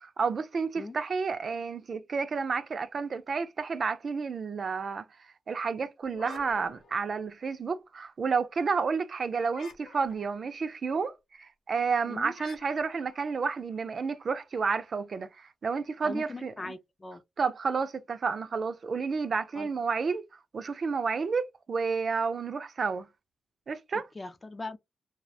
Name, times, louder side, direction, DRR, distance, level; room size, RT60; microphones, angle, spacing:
voice 1, 0.0-5.0 5.5-16.7 17.4-20.2 20.5-23.1 23.7-24.1, right 5 dB, 50° right, 0.3 m, -31 dB
sound 1, 6.0-7.6 9.5-10.5 12.3-14.2, left 4 dB, 70° left, 0.9 m, -51 dB
voice 2, 16.0-17.2 19.5-19.7 23.9-24.8, left 2 dB, 25° left, 0.4 m, -40 dB
2.3 x 2.1 x 2.6 m
cardioid pair, 75°, 0 cm